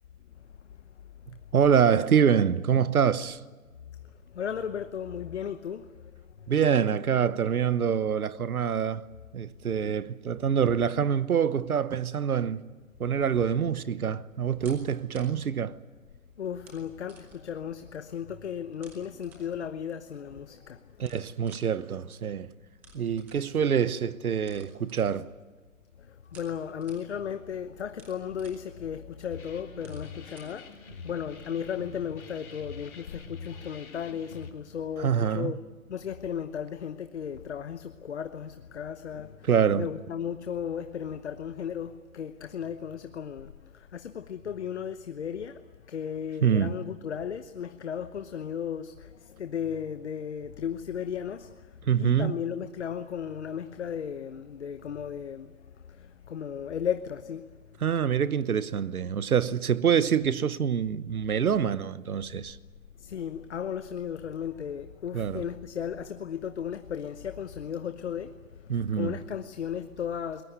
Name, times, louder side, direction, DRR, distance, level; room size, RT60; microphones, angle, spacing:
voice 1, 1.3-3.4 6.5-9.1 9.3-12.6 13.0-15.8 21.0-22.5 22.9-25.3 35.0-35.5 39.4-39.9 46.4-46.7 51.8-52.4 57.8-62.6 65.1-65.4 68.7-69.1, right 7 dB, 80° right, 1.1 m, -25 dB
voice 2, 4.3-6.1 16.4-20.8 26.0-35.6 35.9-39.5 39.8-55.5 55.9-57.5 63.0-70.4, left 8 dB, 50° left, 1.0 m, -35 dB
sound 1, 14.5-31.5, right 2 dB, 5° right, 0.8 m, -57 dB
sound 2, 29.3-34.5, left 4 dB, 80° left, 3.7 m, -45 dB
23.0 x 20.5 x 9.3 m
hypercardioid pair, 165°, 43 cm